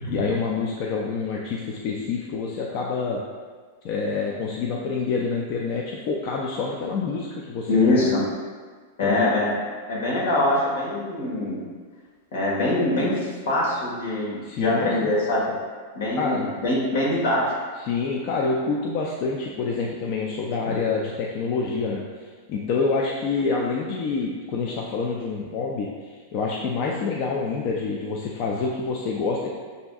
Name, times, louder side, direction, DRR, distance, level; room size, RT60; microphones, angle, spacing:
voice 1, 0.1-3.2 3.8-8.1 9.0-9.3 14.4-15.1 16.1-16.5 17.8-22.0 22.5-29.5, left 4 dB, 40° left, -2 dB, 0.4 m, -27 dB
voice 2, 7.7-8.2 9.0-9.5 9.9-11.6 12.3-15.5 15.9-17.4 20.6-20.7, left 2 dB, 75° left, -4 dB, 1.4 m, -23 dB
6.7 x 2.6 x 2.3 m, 1.5 s
supercardioid pair, 160°, 0 cm